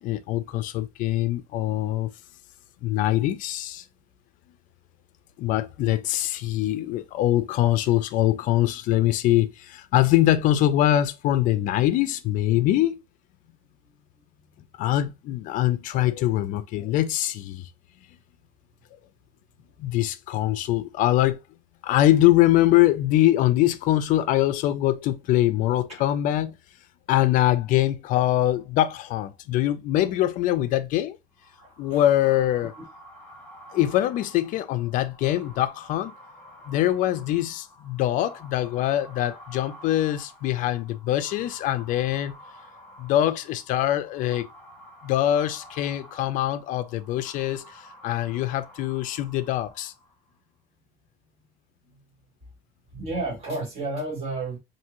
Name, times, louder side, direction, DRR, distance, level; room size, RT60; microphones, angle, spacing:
voice 1, 0.0-2.1 2.8-3.8 5.4-13.0 14.8-17.7 19.8-21.4 21.8-26.6 27.1-31.2 31.8-32.7 33.7-36.1 36.7-42.3 43.0-44.5 45.0-49.9, left 13 dB, 55° left, 0.4 m, -23 dB
sound 1, 31.4-50.3, equal, 10° left, 1.9 m, -49 dB
voice 2, 31.6-32.0 32.8-32.9 33.7-33.8 52.9-54.6, right 2 dB, 40° right, 1.5 m, -32 dB
5.4 x 2.6 x 2.9 m
cardioid pair, 170°, 16 cm